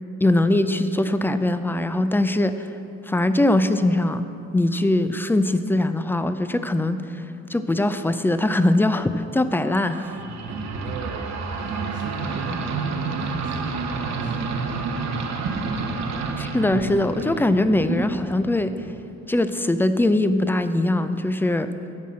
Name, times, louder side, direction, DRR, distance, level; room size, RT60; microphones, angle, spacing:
voice 1, 0.2-2.7 3.1-4.2 4.5-7.2 7.5-10.1 15.4-15.6 16.4-18.7 19.3-21.7, left 1 dB, 5° left, 11 dB, 0.4 m, -21 dB
sound 1, 9.7-19.0, right 4 dB, 65° right, 1.0 m, -29 dB
voice 2, 10.8-15.0 15.3-15.9, right 4 dB, 85° right, 0 dB, 0.8 m, -39 dB
9.5 x 5.7 x 7.5 m, 2.8 s
cardioid pair, 90°, 30 cm